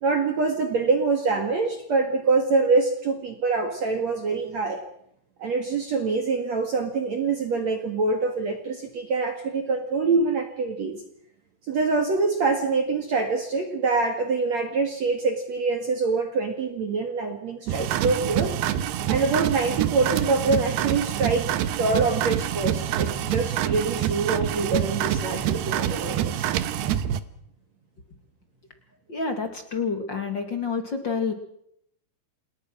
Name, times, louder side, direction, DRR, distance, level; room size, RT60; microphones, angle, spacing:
voice 1, 0.0-4.8 5.4-11.0 11.7-18.6 19.1-21.5 21.8-26.5, right 4 dB, 50° right, 6 dB, 2.1 m, -25 dB
sound 1, 17.7-27.2, right 11 dB, 70° right, 2.7 m, -26 dB
voice 2, 29.1-31.3, left 5 dB, 45° left, 6 dB, 1.5 m, -28 dB
28.0 x 19.5 x 6.2 m, 0.72 s
omnidirectional pair, 5.7 m